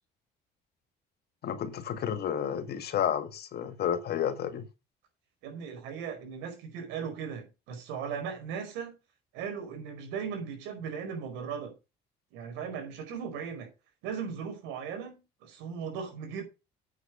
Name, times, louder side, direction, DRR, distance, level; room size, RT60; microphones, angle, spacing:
voice 1, 1.4-4.6, left 9 dB, 60° left, 1.8 m, -31 dB
voice 2, 5.4-8.9 9.3-11.7 12.3-13.7 14.0-16.4, right 6 dB, 85° right, 4.8 m, -37 dB
8.8 x 8.0 x 5.0 m
supercardioid pair, 80°, 19 cm